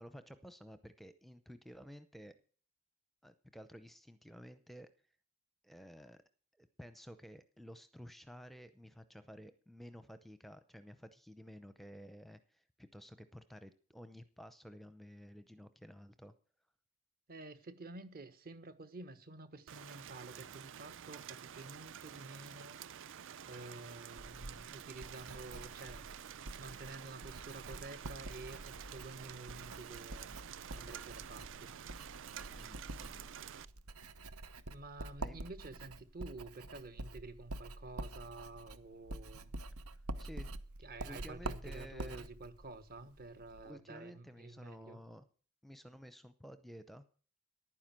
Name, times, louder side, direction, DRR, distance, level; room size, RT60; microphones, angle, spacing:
voice 1, 0.0-2.3 3.2-4.9 5.6-6.2 6.6-16.3 32.5-33.3 35.2-35.4 40.2-40.5 41.0-42.3 43.6-45.2 45.6-47.0, equal, ahead, 0.7 m, -53 dB
voice 2, 17.3-22.8 23.5-26.0 26.4-30.3 30.7-31.7 34.7-39.5 40.8-45.0, right 2 dB, 45° right, 1.3 m, -50 dB
Rain, 19.7-33.7, right 9 dB, 60° right, 0.5 m, -50 dB
Writing, 24.2-43.7, right 2 dB, 85° right, 0.9 m, -47 dB
11.5 x 9.8 x 7.6 m
head